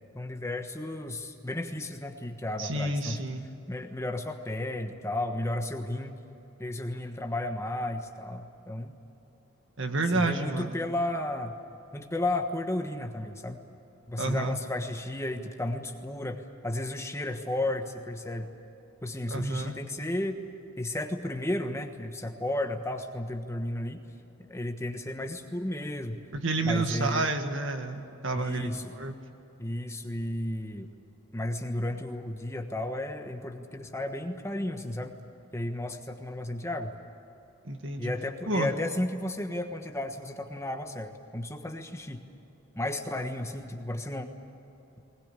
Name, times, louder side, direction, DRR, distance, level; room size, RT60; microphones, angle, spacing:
voice 1, 0.1-3.2 3.7-6.2 6.6-8.9 10.1-11.5 11.9-13.6 14.1-18.5 19.0-20.4 20.8-24.0 24.5-26.2 26.6-27.3 28.3-28.9 29.6-30.9 31.3-35.1 35.5-36.9 38.0-42.2 42.8-44.3, left 1 dB, 15° left, 5 dB, 1.3 m, -33 dB
voice 2, 2.6-3.4 9.8-10.8 14.2-14.6 19.3-19.8 26.3-29.1 37.6-38.1 38.5-38.7, right 2 dB, 60° right, 5 dB, 1.9 m, -30 dB
20.5 x 20.0 x 9.9 m, 2.9 s
head